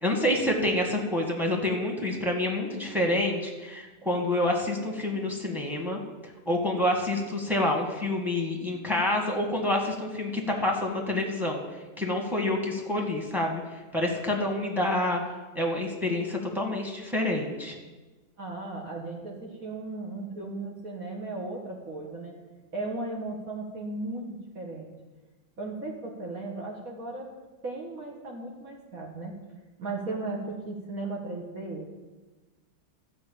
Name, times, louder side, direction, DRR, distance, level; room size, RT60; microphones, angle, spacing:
voice 1, 0.0-6.0 6.4-11.6 12.0-13.6 13.9-15.2 15.5-17.7, left 1 dB, ahead, 0 dB, 1.7 m, -27 dB
voice 2, 18.4-22.3 22.7-24.3 24.6-24.9 25.6-27.3 27.6-29.3 29.8-31.9, right 2 dB, 50° right, -1 dB, 1.9 m, -36 dB
13.0 x 5.6 x 8.6 m, 1.2 s
omnidirectional pair, 2.1 m